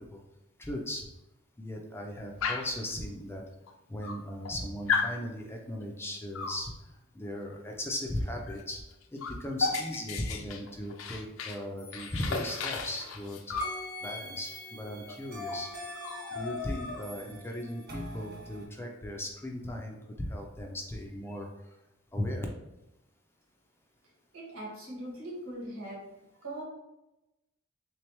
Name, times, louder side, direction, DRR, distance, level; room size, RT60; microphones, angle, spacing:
voice 1, 0.6-1.1 1.6-3.4 3.9-6.7 7.1-8.8 9.1-13.4 14.0-15.7 16.3-21.5 22.1-22.5, left 1 dB, 10° left, 1 dB, 0.4 m, -37 dB
Dog, 2.4-2.8 3.7-3.8 4.0-4.5 4.9-5.2 6.3-6.6 8.5-8.6 8.9-11.6 11.9-13.8 15.1-15.2 15.5-15.7 15.9-17.2, left 5 dB, 70° left, 0.4 m, -34 dB
sound 1, 11.8-13.2 13.6-18.6, left 1 dB, 50° right, 1.1 m, -43 dB
voice 2, 24.3-26.1 26.4-26.6, right 1 dB, 85° right, -4 dB, 1.5 m, -40 dB
3.5 x 3.2 x 2.9 m, 0.95 s
head